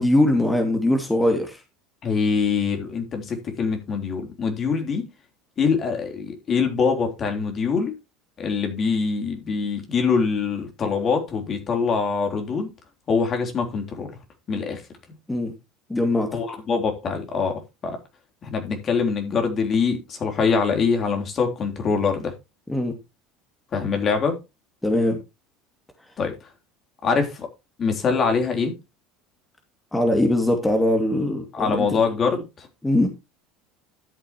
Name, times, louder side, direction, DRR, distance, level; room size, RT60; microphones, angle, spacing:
voice 1, 0.0-1.6 15.3-15.5 15.9-16.3 22.7-23.0 24.8-25.2 29.9-31.9 32.8-33.1, left 1 dB, 10° left, 2.5 m, -21 dB
voice 2, 2.0-5.1 5.6-7.9 8.4-12.7 13.1-14.2 14.5-14.8 16.3-18.0 18.4-22.3 23.7-24.4 26.2-26.4 27.0-27.5 27.8-28.7 31.5-32.7, left 5 dB, 40° left, 3.6 m, -24 dB
13.0 x 8.4 x 3.0 m
hypercardioid pair, 75°, 0 cm